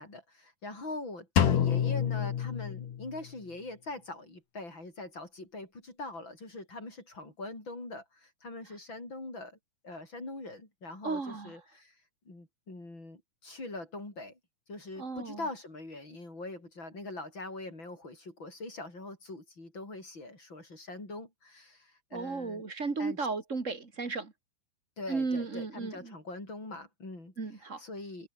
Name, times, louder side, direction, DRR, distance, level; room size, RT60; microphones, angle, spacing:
voice 1, 0.0-9.6 9.8-12.0 12.3-14.4 14.7-22.7 23.0-23.2 25.0-28.3, left 2 dB, 35° left, 8.7 m, -43 dB
Drum, 1.4-3.3, left 9 dB, 85° left, 3.7 m, -28 dB
voice 2, 11.0-11.5 15.0-15.4 22.1-24.3 25.1-26.1 27.4-27.8, right 4 dB, 25° right, 2.2 m, -34 dB
omnidirectional pair, 3.6 m